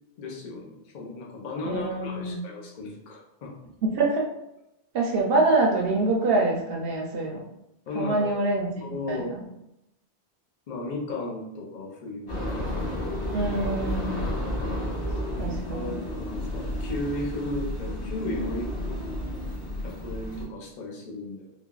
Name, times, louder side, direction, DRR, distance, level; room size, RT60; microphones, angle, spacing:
voice 1, 0.2-3.5 7.9-8.3 8.8-9.3 10.7-12.5 15.3-19.0 19.8-21.5, left 2 dB, 50° left, -2 dB, 0.6 m, -35 dB
voice 2, 1.6-2.4 3.8-4.2 4.9-7.4 7.9-8.7 9.1-9.4 13.3-14.2 15.4-15.9, right 2 dB, 65° right, 0 dB, 0.7 m, -25 dB
sound 1, 12.3-20.4, left 1 dB, 80° left, 1.3 m, -31 dB
3.3 x 2.2 x 2.3 m, 0.86 s
omnidirectional pair, 1.1 m